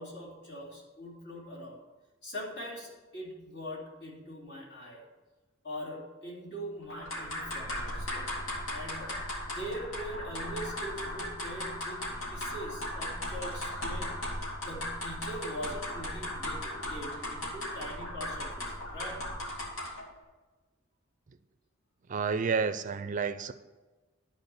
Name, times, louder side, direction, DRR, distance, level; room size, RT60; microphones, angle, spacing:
voice 1, 0.0-1.8 2.2-5.0 5.6-8.3 8.7-9.2 9.4-19.2, equal, 60° left, -3 dB, 3.1 m, -42 dB
sound 1, 6.9-20.1, left 1 dB, 85° left, 2.7 m, -37 dB
voice 2, 22.1-23.5, right 5 dB, 40° right, 12 dB, 0.4 m, -30 dB
12.0 x 4.7 x 6.9 m, 1.2 s
head